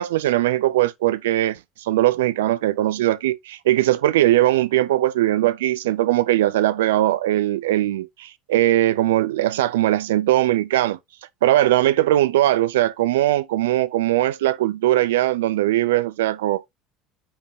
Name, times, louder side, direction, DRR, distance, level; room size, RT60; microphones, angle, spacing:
voice 1, 0.0-11.0 11.4-16.6, right 14 dB, 85° right, 0.4 m, -20 dB
8.7 x 3.7 x 3.5 m
hypercardioid pair, 80°, 0 cm